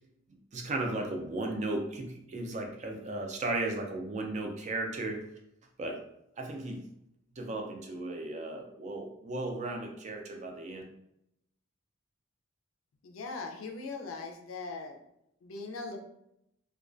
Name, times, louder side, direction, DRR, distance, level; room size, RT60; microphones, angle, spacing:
voice 1, 0.5-5.2 5.8-6.0 6.4-6.8 7.4-10.8, right 2 dB, 35° right, 2 dB, 0.4 m, -35 dB
voice 2, 13.0-15.0 15.4-16.0, left 3 dB, 75° left, 3 dB, 0.4 m, -40 dB
2.3 x 2.2 x 2.4 m, 0.79 s
head